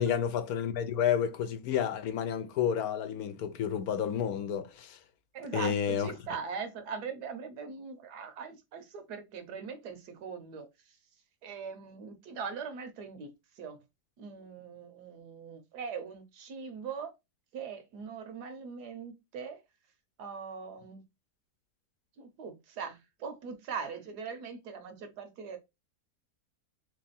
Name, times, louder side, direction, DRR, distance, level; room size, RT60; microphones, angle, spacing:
voice 1, 0.0-5.0 5.5-6.1, left 8 dB, 70° left, 1.1 m, -30 dB
voice 2, 5.3-10.7 11.4-13.3 13.6-13.8 14.2-17.1 17.5-19.6 20.2-21.0 22.2-25.6, right 6 dB, 80° right, 1.4 m, -41 dB
3.5 x 3.3 x 4.0 m
omnidirectional pair, 1.7 m